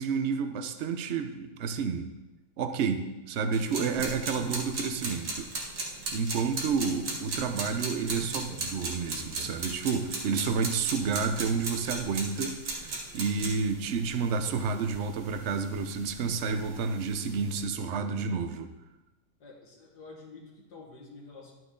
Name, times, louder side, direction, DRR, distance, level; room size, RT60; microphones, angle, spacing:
voice 1, 0.0-2.1 2.6-5.5 6.1-18.7, right 5 dB, 55° right, 8 dB, 0.9 m, -30 dB
sound 1, 3.5-17.6, right 2 dB, 70° right, 2.1 m, -38 dB
voice 2, 6.2-6.6 17.8-18.4 19.4-21.5, left 3 dB, 90° left, -2 dB, 2.4 m, -49 dB
11.5 x 7.8 x 3.8 m, 1.1 s
omnidirectional pair, 1.7 m